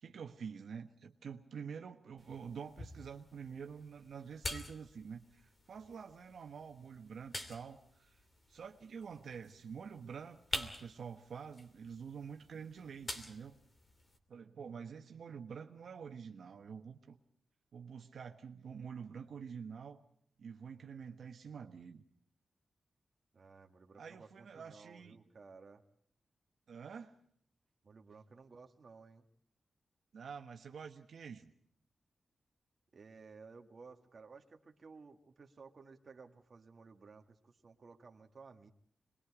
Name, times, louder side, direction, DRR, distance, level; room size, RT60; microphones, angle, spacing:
voice 1, 0.0-8.2 8.5-13.5 14.3-17.2 17.7-20.0 20.4-22.0 24.0-25.2 26.7-27.1 30.1-31.5, right 6 dB, 85° right, 4 dB, 1.3 m, -47 dB
sound 1, 2.2-14.2, left 1 dB, 30° left, 2.8 m, -48 dB
voice 2, 23.3-25.8 27.8-29.2 32.9-38.7, right 4 dB, 45° right, 3 dB, 2.0 m, -56 dB
27.5 x 21.5 x 4.9 m, 0.65 s
wide cardioid pair, 155°, 0 cm